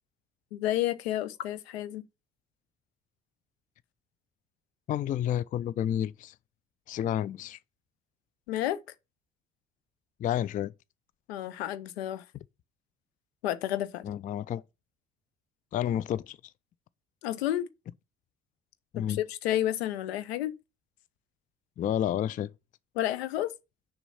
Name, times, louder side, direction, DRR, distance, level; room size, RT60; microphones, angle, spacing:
voice 1, 0.5-2.0 8.5-8.8 11.3-12.2 13.4-14.0 17.2-17.7 19.0-20.5 22.9-23.5, left 13 dB, 70° left, 0.7 m, -30 dB
voice 2, 4.9-6.3 6.9-7.6 10.2-10.7 14.0-14.6 15.7-16.4 18.9-19.2 21.8-22.5, left 10 dB, 25° left, 0.4 m, -30 dB
6.8 x 5.4 x 5.6 m
figure-of-eight pair, 50°, 32 cm